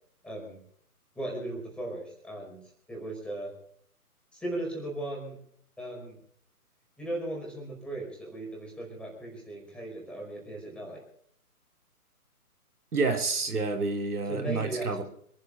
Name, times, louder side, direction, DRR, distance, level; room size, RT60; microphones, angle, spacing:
voice 1, 0.2-0.6 1.2-2.6 2.9-3.5 4.3-5.4 5.8-6.2 7.0-11.0 14.3-15.0, right 1 dB, ahead, -2 dB, 5.2 m, -37 dB
voice 2, 12.9-15.0, right 3 dB, 75° right, 3 dB, 3.2 m, -29 dB
27.0 x 11.0 x 4.2 m, 0.65 s
figure-of-eight pair, 145°, 46 cm